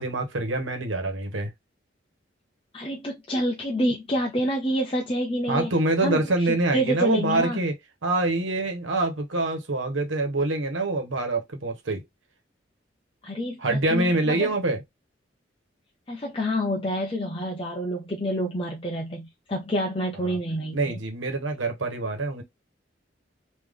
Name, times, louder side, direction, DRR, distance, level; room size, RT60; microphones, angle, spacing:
voice 1, 0.0-1.5 5.5-7.7 8.0-12.0 13.6-14.8 20.2-20.4 20.7-22.4, right 2 dB, 85° right, 1.3 m, -25 dB
voice 2, 2.7-5.7 6.0-6.2 6.7-7.6 13.2-14.5 16.1-21.0, equal, 25° left, 0.7 m, -28 dB
3.6 x 3.0 x 3.7 m
head